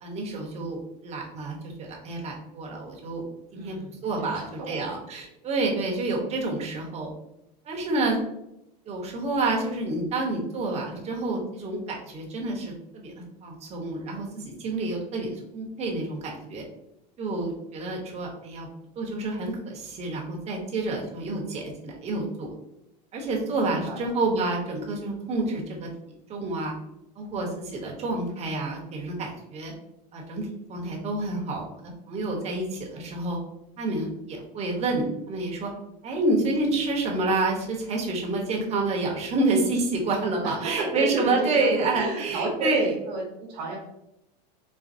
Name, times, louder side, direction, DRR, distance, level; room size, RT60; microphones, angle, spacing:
voice 1, 0.0-3.2 3.5-7.1 7.6-8.2 8.9-16.6 17.2-18.7 19.0-22.5 23.1-26.7 27.2-29.7 30.1-33.4 33.8-35.7 36.0-42.9, right 2 dB, 30° right, 0 dB, 0.9 m, -28 dB
voice 2, 3.5-4.9 23.6-24.0 40.4-43.8, right 3 dB, 75° right, -4 dB, 0.9 m, -33 dB
4.1 x 2.0 x 2.6 m, 0.83 s
supercardioid pair, 120°, 21 cm